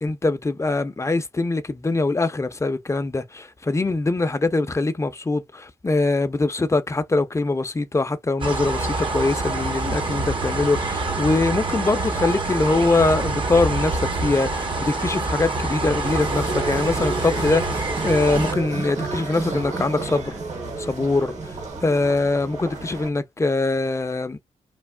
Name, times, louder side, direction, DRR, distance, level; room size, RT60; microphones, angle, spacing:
voice 1, 0.0-20.3 20.8-21.5 21.8-24.4, left 3 dB, 20° left, 0.6 m, -23 dB
sound 1, 8.4-18.5, right 2 dB, 40° right, 0.9 m, -26 dB
sound 2, 16.0-23.1, right 3 dB, 60° right, 1.6 m, -31 dB
3.3 x 2.3 x 2.2 m
supercardioid pair, 55°, 13 cm